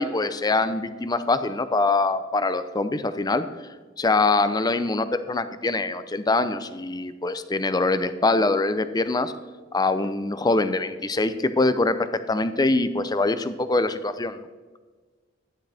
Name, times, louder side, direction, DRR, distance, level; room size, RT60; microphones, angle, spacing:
voice 1, 0.0-3.5 4.0-9.3 9.7-14.4, left 3 dB, 20° left, 12 dB, 0.5 m, -24 dB
13.0 x 10.5 x 3.4 m, 1.4 s
head